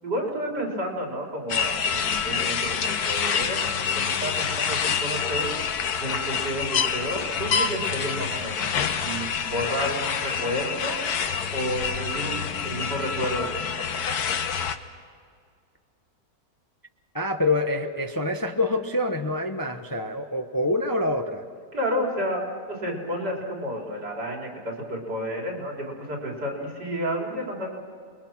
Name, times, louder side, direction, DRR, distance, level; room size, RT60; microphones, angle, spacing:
voice 1, 0.0-8.8 9.0-11.0 11.5-14.1 21.7-22.4 22.7-27.8, equal, 85° right, -1 dB, 4.7 m, -31 dB
sound 1, 1.5-14.8, left 6 dB, 70° left, 1.5 m, -27 dB
voice 2, 17.1-21.4, left 2 dB, 15° left, 5 dB, 0.7 m, -26 dB
29.5 x 22.0 x 6.0 m, 2.2 s
omnidirectional pair, 1.7 m